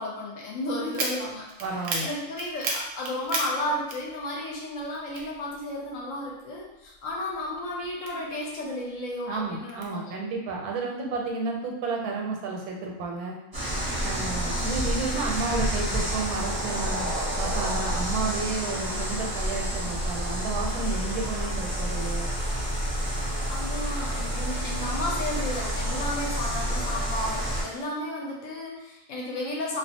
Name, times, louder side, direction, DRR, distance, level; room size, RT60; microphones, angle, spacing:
voice 1, 0.0-1.5 2.0-10.1 18.8-19.2 23.4-29.8, left 1 dB, 70° left, -3 dB, 0.9 m, -33 dB
sound 1, 0.9-4.5 4.8-6.1 6.6-8.6 9.1-9.9, right 3 dB, 70° right, 0.8 m, -34 dB
voice 2, 1.6-2.1 9.2-13.3 14.0-22.3, right 3 dB, 90° right, 0 dB, 1.1 m, -32 dB
sound 2, 13.5-27.6, right 1 dB, 25° right, 0.5 m, -29 dB
2.4 x 2.3 x 2.7 m, 0.97 s
omnidirectional pair, 1.6 m